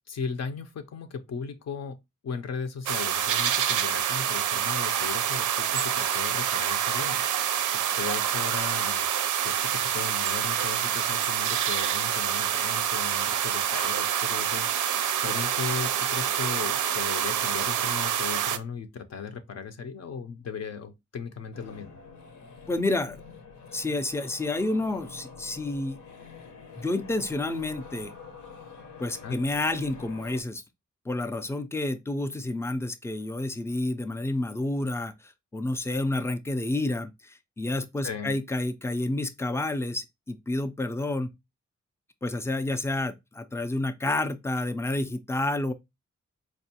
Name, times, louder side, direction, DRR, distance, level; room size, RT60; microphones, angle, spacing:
voice 1, 0.1-2.0 2.2-7.2 7.7-9.1 9.4-22.0 29.2-29.4 38.0-38.4, left 6 dB, 60° left, 0.5 m, -37 dB
sound 1, 2.9-18.6, right 9 dB, 85° right, 0.5 m, -27 dB
sound 2, 21.5-30.4, left 5 dB, 85° left, 0.9 m, -46 dB
voice 2, 22.7-23.2 23.7-26.0 26.7-28.1 29.0-30.6 31.1-41.3 42.2-45.7, left 2 dB, 10° left, 0.3 m, -29 dB
4.4 x 2.4 x 2.7 m
wide cardioid pair, 150°, 30 cm